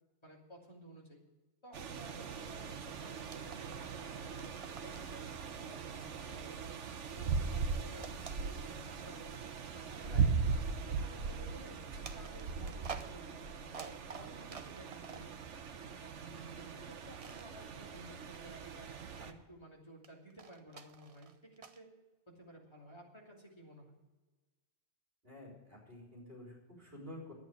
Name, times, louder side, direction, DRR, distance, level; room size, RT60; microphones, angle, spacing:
voice 1, 0.2-1.2 1.6-4.5 4.8-6.8 7.2-10.4 10.9-11.8 12.2-15.3 15.7-21.9 22.3-24.0, right 1 dB, 25° left, -3 dB, 2.9 m, -55 dB
sound 1, 1.7-19.3, right 5 dB, 90° right, 1.2 m, -39 dB
sound 2, 3.3-4.0 4.2-5.2 5.7-7.2 8.0-9.0 9.7-9.8 12.0-15.4 16.9-17.5 20.0-21.8, right 5 dB, 40° right, 0.6 m, -50 dB
voice 2, 25.2-27.3, left 1 dB, 55° right, -3 dB, 4.3 m, -50 dB
10.5 x 8.4 x 9.2 m, 1.2 s
omnidirectional pair, 1.2 m